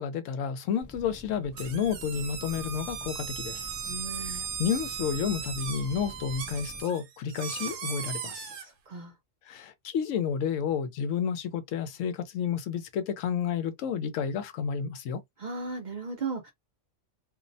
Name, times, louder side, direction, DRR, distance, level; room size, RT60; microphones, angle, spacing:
voice 1, 0.0-3.7 4.1-8.5 9.5-15.2, left 7 dB, 85° left, 1.0 m, -31 dB
sound 1, 0.8-6.8, left 1 dB, 25° left, 0.4 m, -47 dB
sound 2, 1.6-8.7, right 7 dB, 70° right, 0.9 m, -37 dB
voice 2, 3.9-4.4 8.9-9.1 15.4-16.5, right 4 dB, 55° right, 0.5 m, -36 dB
2.5 x 2.0 x 2.6 m
omnidirectional pair, 1.3 m